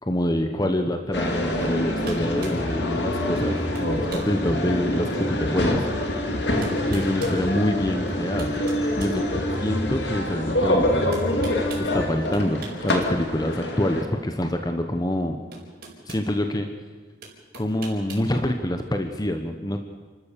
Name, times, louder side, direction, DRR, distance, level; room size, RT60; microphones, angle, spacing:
voice 1, 0.0-5.9 6.9-8.5 9.0-11.2 11.8-15.4 16.0-16.7 17.5-19.8, left 1 dB, 20° left, 5 dB, 1.1 m, -26 dB
sound 1, 1.1-14.0, left 1 dB, 70° left, 2.6 m, -25 dB
sound 2, 1.6-1.8 2.0-2.6 3.4-3.5 3.7-4.3 4.9-5.0 6.1-6.2 6.6-7.4 8.1-9.8 11.1-11.9 12.3-13.0 13.3-13.5 14.9-15.0 15.5-16.3 17.2-18.3, right 4 dB, 60° right, 4.8 m, -41 dB
29.0 x 13.0 x 6.9 m, 1.4 s
head